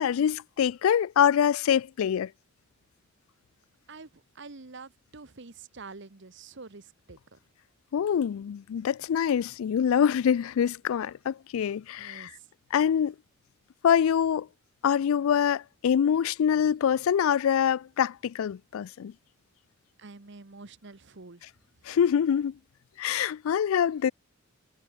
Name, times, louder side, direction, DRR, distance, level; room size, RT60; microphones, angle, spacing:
voice 1, 0.0-2.3 7.9-12.3 12.7-13.1 13.8-14.5 14.8-19.1 21.9-22.5 23.0-24.1, left 8 dB, 75° left, 0.3 m, -25 dB
voice 2, 4.3-7.4 12.0-12.4 20.0-21.4, right 3 dB, 55° right, 1.2 m, -46 dB
head